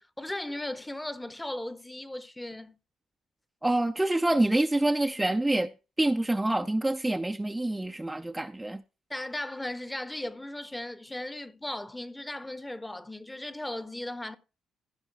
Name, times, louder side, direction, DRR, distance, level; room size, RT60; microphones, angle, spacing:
voice 1, 0.0-2.8 9.1-14.4, left 1 dB, 10° left, 0.8 m, -37 dB
voice 2, 3.6-5.7 6.0-8.8, right 1 dB, 10° right, 0.5 m, -26 dB
15.5 x 5.2 x 4.7 m
cardioid pair, 90°, 0 cm